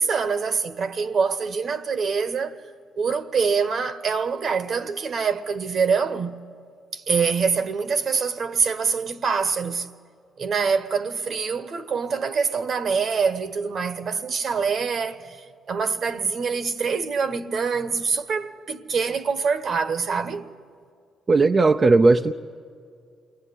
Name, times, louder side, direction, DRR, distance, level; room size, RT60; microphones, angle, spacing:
voice 1, 0.0-2.6 3.0-6.4 6.9-9.9 10.4-20.5, right 5 dB, 55° right, 1.3 m, -25 dB
voice 2, 21.3-22.3, right 3 dB, 30° right, 0.6 m, -16 dB
28.5 x 21.0 x 9.9 m
cardioid pair, 90°, 0 cm